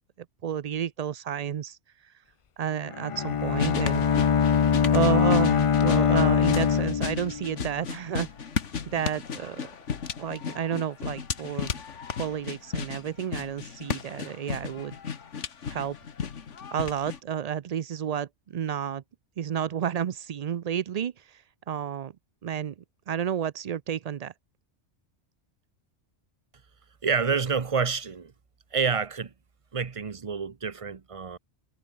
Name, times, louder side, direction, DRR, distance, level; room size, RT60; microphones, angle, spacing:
voice 1, 0.4-2.1 2.6-4.0 4.9-8.3 8.9-9.7 10.2-11.7 12.2-15.0 15.7-16.0 16.7-19.0 19.4-22.1 22.4-22.7 23.1-24.3, right 9 dB, 55° right, 0.4 m, -31 dB
Bowed string instrument, 2.9-7.6, left 7 dB, 45° left, 0.4 m, -23 dB
sound 1, 3.6-17.2, left 6 dB, 90° left, 1.7 m, -35 dB
voice 2, 27.0-28.3 28.7-29.3 29.7-31.4, right 5 dB, 30° right, 0.8 m, -28 dB
omnidirectional pair, 1.2 m